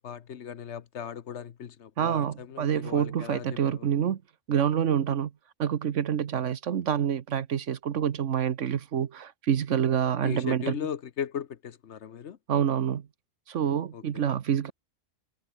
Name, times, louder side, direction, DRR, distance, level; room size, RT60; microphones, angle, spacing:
voice 1, 0.0-4.0 10.2-12.4 13.9-14.2, left 8 dB, 65° left, 1.2 m, -38 dB
voice 2, 2.0-4.2 4.5-5.3 5.6-10.7 12.5-13.0 13.5-14.7, right 8 dB, 70° right, 1.3 m, -27 dB
omnidirectional pair, 1.3 m